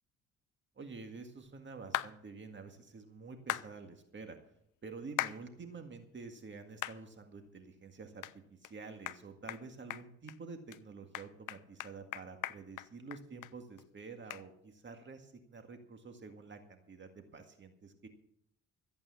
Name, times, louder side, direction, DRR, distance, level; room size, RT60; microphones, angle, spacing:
voice 1, 0.8-4.4 4.8-18.1, right 4 dB, 40° right, 5 dB, 1.9 m, -49 dB
sound 1, 1.9-2.1 3.5-3.7 5.2-5.4 5.9-6.0 6.8-7.0 7.5-7.6 8.2-8.3 8.6-8.7 9.1-9.2 9.5-9.6 9.9-10.4 10.7-10.8 11.1-13.5 13.8-13.9 14.3-14.4, left 15 dB, 80° left, 0.6 m, -38 dB
14.5 x 8.7 x 7.0 m, 0.70 s
cardioid pair, 90°, 30 cm